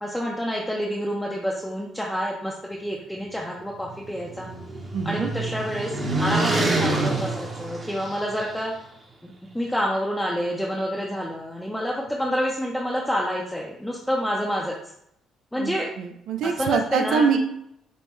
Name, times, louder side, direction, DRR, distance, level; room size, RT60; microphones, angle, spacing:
voice 1, 0.0-4.5 5.0-5.9 6.2-8.7 9.2-9.3 9.5-14.7 15.5-15.9 16.4-17.4, equal, 5° left, -3 dB, 0.5 m, -28 dB
sound 1, 3.7-8.5, right 2 dB, 30° right, 0.8 m, -27 dB
voice 2, 4.9-5.3 15.6-17.4, right 6 dB, 80° right, 6 dB, 0.4 m, -24 dB
5.2 x 2.1 x 3.1 m, 0.75 s
cardioid pair, 95°, 0 cm